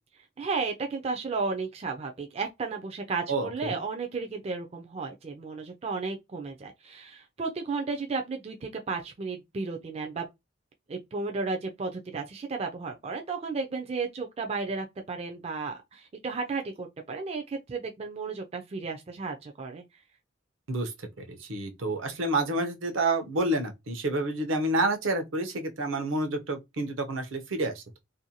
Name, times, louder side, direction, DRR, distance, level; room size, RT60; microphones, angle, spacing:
voice 1, 0.4-10.3 10.9-19.8, right 4 dB, 30° right, 0.3 m, -33 dB
voice 2, 3.3-3.8 20.7-20.9 21.3-28.0, right 2 dB, 75° right, 0.7 m, -29 dB
2.6 x 2.2 x 2.7 m
head